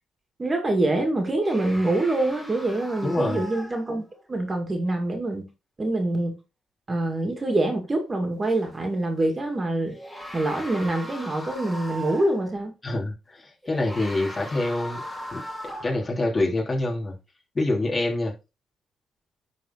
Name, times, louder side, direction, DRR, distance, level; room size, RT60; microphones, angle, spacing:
voice 1, 0.4-5.5 5.8-6.3 6.9-10.0 10.3-12.7, right 2 dB, 25° right, 2.1 m, -25 dB
sound 1, 1.4-4.2 8.4-8.6 9.8-12.5 13.6-16.1, equal, 5° left, 2.1 m, -39 dB
voice 2, 3.0-3.4 12.8-15.0 15.3-15.4 15.8-17.1 17.5-18.3, left 2 dB, 30° left, 3.0 m, -26 dB
10.5 x 4.2 x 3.9 m
cardioid pair, 90°, 0 cm